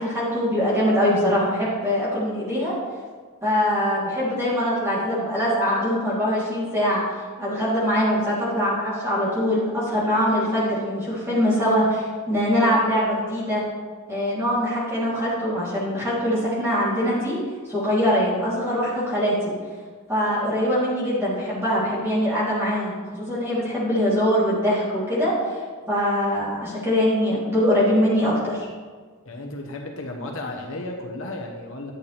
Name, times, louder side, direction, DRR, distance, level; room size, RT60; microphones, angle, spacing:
voice 1, 0.0-2.7 3.4-7.0 7.4-13.6 14.1-17.4 17.7-19.5 20.1-25.6 25.9-28.7, equal, 10° right, -9 dB, 3.2 m, -23 dB
voice 2, 29.2-31.9, left 2 dB, 60° left, 2 dB, 1.1 m, -33 dB
11.5 x 8.5 x 3.4 m, 1.5 s
head